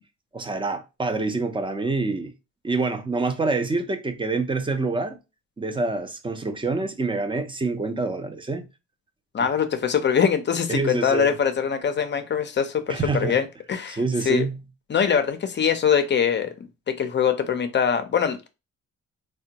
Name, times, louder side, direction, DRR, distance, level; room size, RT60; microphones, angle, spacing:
voice 1, 0.3-2.3 2.6-5.2 5.6-8.7 10.7-11.3 12.9-13.4 14.0-14.6, right 3 dB, 15° right, 0.5 m, -26 dB
voice 2, 9.3-14.4 14.9-16.5 16.9-18.5, left 7 dB, 35° left, 0.5 m, -23 dB
3.5 x 2.2 x 2.8 m
cardioid pair, 90°, 30 cm